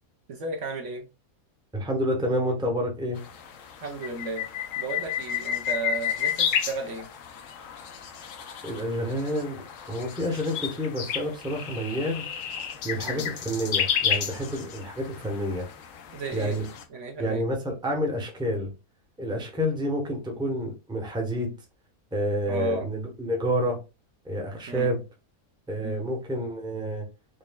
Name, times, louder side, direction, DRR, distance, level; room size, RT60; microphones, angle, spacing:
voice 1, 0.3-1.1 3.8-4.4 4.8-7.1 13.0-13.2 16.1-16.6 16.9-17.4 22.5-22.9 24.7-24.9 25.8-26.0, right 4 dB, 60° right, 1.0 m, -34 dB
voice 2, 1.7-3.2 8.6-9.6 9.9-12.2 12.8-15.7 16.3-16.7 17.2-18.7 19.2-21.5 22.1-23.8 24.2-25.0 25.7-27.1, equal, 5° right, 0.8 m, -29 dB
sound 1, 3.2-16.8, left 8 dB, 65° left, 1.0 m, -32 dB
5.2 x 3.1 x 2.2 m
omnidirectional pair, 1.5 m